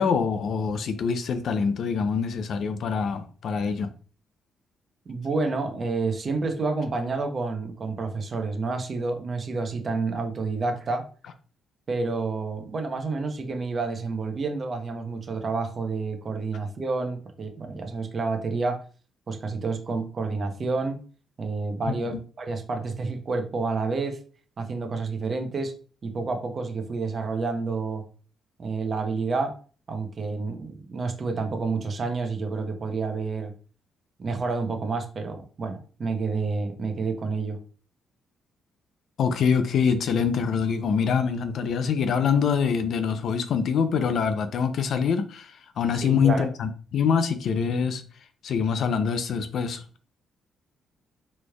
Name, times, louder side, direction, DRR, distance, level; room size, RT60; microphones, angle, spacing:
voice 1, 0.0-3.9 22.1-22.2 39.2-48.0 48.4-49.8, left 6 dB, 65° left, 0.5 m, -25 dB
voice 2, 5.1-11.0 11.9-18.8 19.3-21.0 21.4-24.2 24.6-25.7 26.0-28.0 28.6-29.6 29.9-33.5 34.2-37.6 46.0-46.5, right 4 dB, 40° right, 0.8 m, -29 dB
4.2 x 3.2 x 2.3 m
cardioid pair, 90°, 0 cm